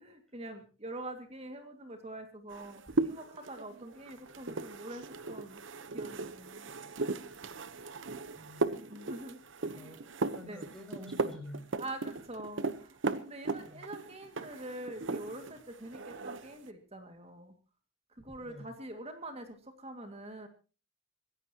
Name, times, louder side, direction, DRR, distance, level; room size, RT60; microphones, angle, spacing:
voice 1, 0.0-5.6 5.9-6.6 8.9-9.4 9.7-9.9 10.5-10.7 11.8-17.5 18.2-20.5, right 1 dB, 30° right, 6 dB, 2.2 m, -45 dB
sound 1, 2.5-15.6 15.9-16.6, right 3 dB, 70° right, 1.0 m, -37 dB
voice 2, 9.7-10.0 10.3-11.7 13.6-13.8 18.4-18.7, left 1 dB, ahead, 2 dB, 6.8 m, -48 dB
26.0 x 15.5 x 3.0 m, 0.34 s
head